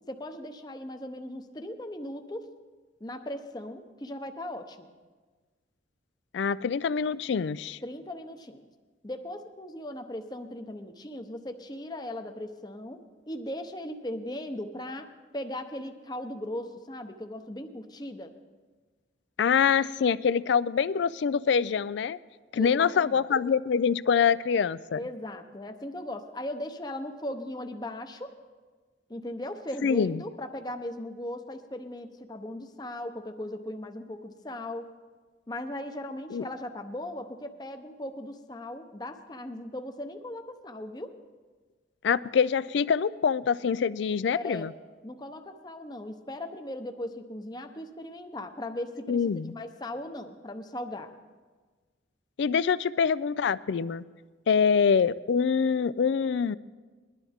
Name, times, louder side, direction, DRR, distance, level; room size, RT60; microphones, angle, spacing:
voice 1, 0.1-2.5 3.0-4.9 7.8-8.6 9.0-18.3 22.5-23.2 24.9-28.3 29.1-34.9 35.5-41.2 44.3-44.7 45.0-51.1, left 1 dB, 20° left, 6 dB, 0.7 m, -38 dB
voice 2, 6.3-7.8 19.4-22.2 22.5-25.0 29.8-30.2 36.3-36.4 42.0-44.7 49.1-49.5 52.4-54.0 54.5-56.5, left 6 dB, 70° left, 18 dB, 0.3 m, -25 dB
20.5 x 12.0 x 3.6 m, 1.4 s
head